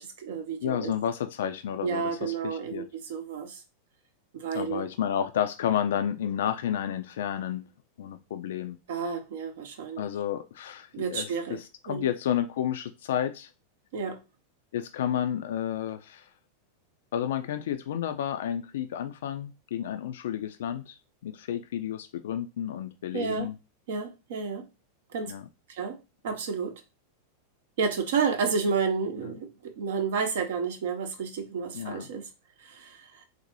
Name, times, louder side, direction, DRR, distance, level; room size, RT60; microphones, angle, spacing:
voice 1, 0.0-0.9 1.8-2.8 3.1-3.6 4.3-4.8 8.9-10.1 10.9-11.6 11.9-12.1 13.9-14.2 23.1-23.5 23.9-24.7 25.1-25.3 25.7-26.0 26.2-26.7 27.8-32.3 32.6-33.1, right 5 dB, 55° right, 0.6 m, -31 dB
voice 2, 0.6-2.9 4.5-7.6 8.0-8.8 10.0-13.5 14.7-16.3 17.1-21.0 21.2-23.6 25.3-25.4 29.2-29.3 31.7-32.1, left 10 dB, 60° left, 0.3 m, -31 dB
4.0 x 2.1 x 2.9 m
figure-of-eight pair, 90°, 0 cm